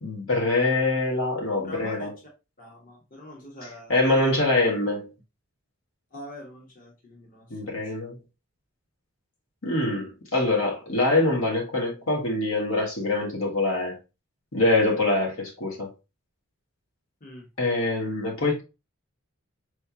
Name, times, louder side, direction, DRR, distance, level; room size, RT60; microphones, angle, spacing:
voice 1, 0.0-2.1 3.9-5.1 7.5-8.2 9.6-14.0 14.5-15.9 17.6-18.6, left 2 dB, 65° left, 1.4 m, -24 dB
voice 2, 1.6-2.1 2.6-4.0 6.1-7.9 17.2-17.5, equal, 40° left, 1.3 m, -44 dB
4.7 x 3.3 x 2.8 m
head